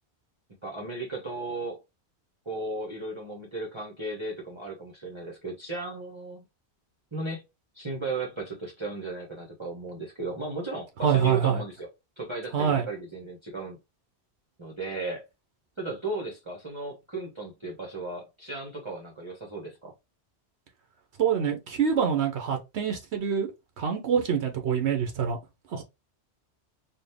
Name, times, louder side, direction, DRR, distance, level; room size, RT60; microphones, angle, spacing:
voice 1, 0.6-1.8 2.4-6.4 7.1-7.4 7.7-11.9 12.2-13.8 14.6-15.2 15.8-19.9, right 3 dB, 30° right, 1.0 m, -35 dB
voice 2, 11.0-11.6 12.5-12.9 21.2-23.5 23.8-25.4 25.7-25.8, right 7 dB, 85° right, 1.1 m, -25 dB
4.3 x 2.4 x 3.4 m
omnidirectional pair, 1.1 m